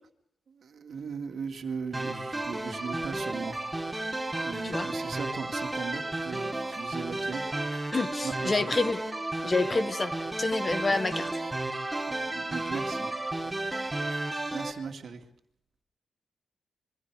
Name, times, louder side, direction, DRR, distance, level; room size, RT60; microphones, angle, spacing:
voice 1, 0.6-3.6 4.4-7.4 8.2-8.7 12.1-13.1 13.4-13.5 14.5-15.2, right 5 dB, 65° right, 5 dB, 2.3 m, -38 dB
sound 1, 1.9-14.7, right 2 dB, 10° right, 3.5 m, -33 dB
voice 2, 7.9-9.0 9.4-10.1 10.4-11.3, left 3 dB, 30° left, 10 dB, 1.5 m, -28 dB
27.0 x 23.5 x 4.9 m, 0.73 s
cardioid pair, 100°, 0 cm